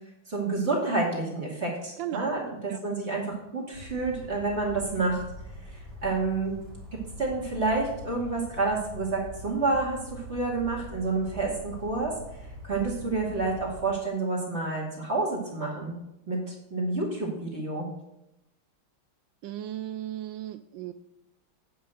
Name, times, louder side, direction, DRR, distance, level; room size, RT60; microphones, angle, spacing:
voice 1, 0.3-5.2 6.0-6.6 6.9-12.1 12.6-16.0 16.3-17.9, right 3 dB, 30° right, -2 dB, 2.5 m, -29 dB
voice 2, 2.0-2.3 2.7-2.8 19.4-20.9, right 12 dB, 75° right, 11 dB, 1.2 m, -36 dB
Bird vocalization bird call bird song, 3.7-13.8, equal, 50° right, 3.0 m, -43 dB
8.6 x 5.5 x 7.9 m, 0.87 s
omnidirectional pair, 2.3 m